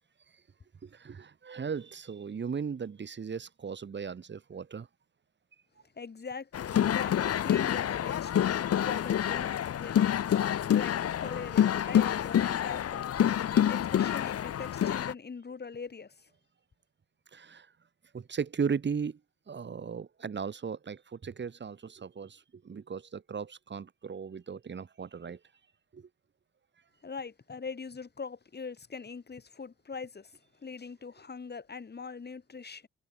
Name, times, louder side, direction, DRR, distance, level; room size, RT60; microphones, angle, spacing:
voice 1, 0.8-4.9 17.3-17.7 18.1-19.2 19.5-25.4 25.9-26.1, right 6 dB, 35° right, 2.4 m, -37 dB
voice 2, 5.9-8.6 8.8-13.1 13.5-16.3 27.0-32.9, left 5 dB, 35° left, 6.2 m, -42 dB
sound 1, 6.5-15.1, left 10 dB, 55° left, 1.1 m, -27 dB
cardioid pair, 90°, 30 cm